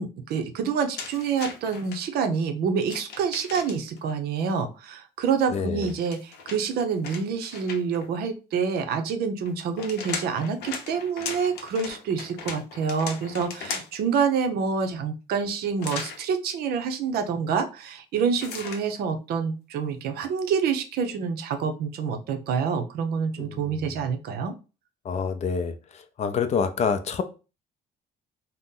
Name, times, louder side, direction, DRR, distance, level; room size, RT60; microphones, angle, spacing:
voice 1, 0.0-24.5, right 6 dB, 70° right, 7 dB, 0.6 m, -27 dB
sound 1, 1.0-2.0 2.8-4.0 5.8-8.1 9.5-14.1 15.8-16.2 18.3-18.9, left 5 dB, 75° left, 0.7 m, -37 dB
voice 2, 5.5-5.9 23.4-23.8 25.0-27.2, left 6 dB, 40° left, 8 dB, 0.4 m, -27 dB
2.7 x 2.1 x 3.6 m, 0.32 s
cardioid pair, 110°, 17 cm